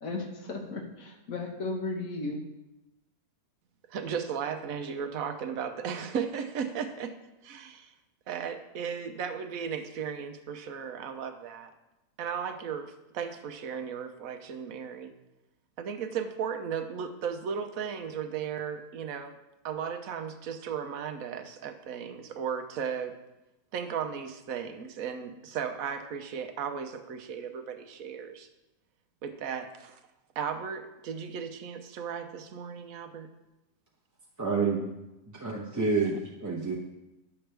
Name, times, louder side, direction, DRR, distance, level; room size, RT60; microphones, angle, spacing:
voice 1, 0.0-2.4, left 3 dB, 60° left, 1 dB, 1.7 m, -35 dB
voice 2, 3.9-7.2 7.4-7.9 8.3-11.7 12.2-15.1 15.8-19.4 19.6-23.2 23.7-28.5 29.2-30.0 30.4-33.3, right 7 dB, 65° right, 8 dB, 1.1 m, -35 dB
voice 3, 34.4-34.9 35.3-36.7, right 4 dB, 15° right, -4 dB, 0.7 m, -29 dB
10.5 x 6.9 x 3.4 m, 0.97 s
omnidirectional pair, 1.7 m